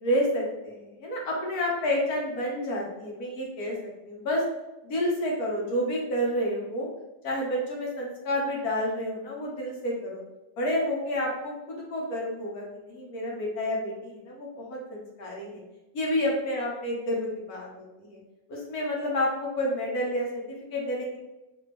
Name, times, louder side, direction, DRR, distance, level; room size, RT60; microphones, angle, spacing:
voice 1, 0.0-4.4 4.8-6.9 7.2-10.2 10.6-15.6 15.9-18.2 18.5-21.2, left 1 dB, 60° left, -3 dB, 1.5 m, -30 dB
4.1 x 2.8 x 3.3 m, 1.0 s
omnidirectional pair, 1.9 m